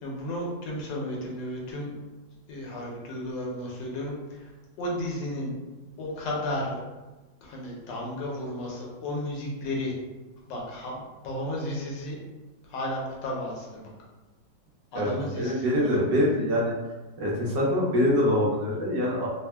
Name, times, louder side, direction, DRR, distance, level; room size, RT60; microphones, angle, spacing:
voice 1, 0.0-1.9 2.5-4.5 4.8-5.5 6.0-6.8 7.4-9.9 10.5-12.2 12.7-13.9 14.9-16.0, left 1 dB, 80° left, -2 dB, 1.4 m, -33 dB
voice 2, 15.4-16.7 17.2-19.3, left 1 dB, 80° right, -4 dB, 1.5 m, -24 dB
4.1 x 2.1 x 2.2 m, 1.1 s
omnidirectional pair, 1.9 m